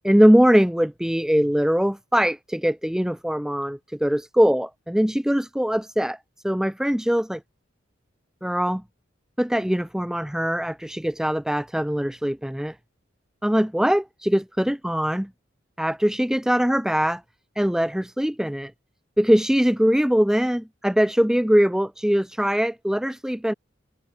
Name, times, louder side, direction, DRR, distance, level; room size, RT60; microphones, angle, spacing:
voice 1, 0.0-6.2 6.4-7.4 8.4-8.8 9.4-12.8 13.4-15.3 15.8-17.2 17.6-18.7 19.2-23.5, equal, 5° right, 0.5 m, -21 dB
head